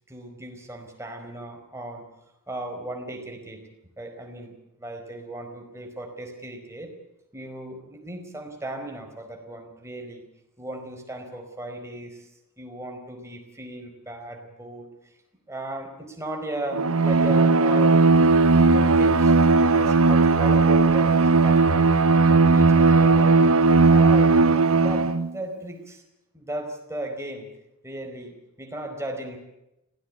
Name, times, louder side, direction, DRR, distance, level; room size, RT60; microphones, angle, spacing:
voice 1, 0.1-2.1 2.5-3.6 4.0-6.9 7.3-10.2 10.6-12.3 12.6-14.9 15.5-18.0 18.6-19.3 19.7-21.2 21.4-23.4 23.9-24.3 24.7-26.0 26.3-27.5 27.8-29.4, right 1 dB, 15° right, 3 dB, 4.7 m, -36 dB
Bowed string instrument, 16.7-25.3, right 3 dB, 65° right, 1.0 m, -17 dB
25.5 x 17.5 x 8.6 m, 0.88 s
head